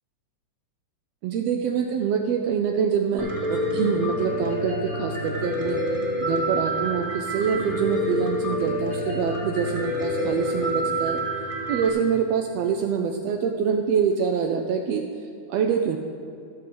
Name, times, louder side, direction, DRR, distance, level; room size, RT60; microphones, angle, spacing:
voice 1, 1.2-5.8 6.2-11.2 11.7-15.0 15.5-16.0, right 7 dB, 80° right, 4 dB, 1.5 m, -25 dB
Piano, 3.2-11.9, equal, 20° left, 1.7 m, -27 dB
14.0 x 4.8 x 7.7 m, 2.7 s
omnidirectional pair, 3.4 m